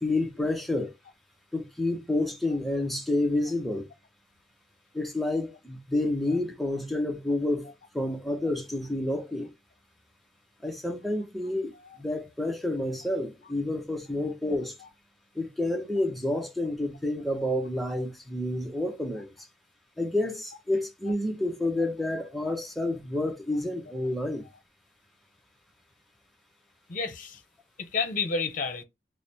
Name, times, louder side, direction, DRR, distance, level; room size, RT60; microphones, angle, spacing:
voice 1, 0.0-0.9 1.5-3.9 4.9-9.5 10.6-11.7 12.0-14.8 15.4-19.3 20.0-24.4, left 1 dB, ahead, 0.6 m, -29 dB
voice 2, 26.9-27.4 27.8-28.8, left 4 dB, 50° left, 0.7 m, -31 dB
3.2 x 2.0 x 4.2 m
head